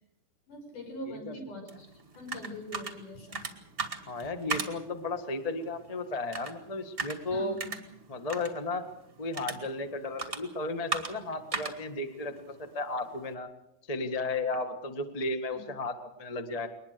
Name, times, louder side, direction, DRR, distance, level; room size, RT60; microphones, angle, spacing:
voice 1, 0.5-1.9 2.2-3.4 7.3-7.8 15.5-15.7, equal, 60° left, 3 dB, 7.3 m, -43 dB
sound 1, 1.7-13.3, right 4 dB, 25° right, 1.5 m, -40 dB
voice 2, 4.1-7.6 8.1-8.8 9.2-13.5 13.9-16.7, left 2 dB, 40° left, 8 dB, 0.5 m, -34 dB
22.5 x 20.5 x 6.8 m, 0.81 s
omnidirectional pair, 4.1 m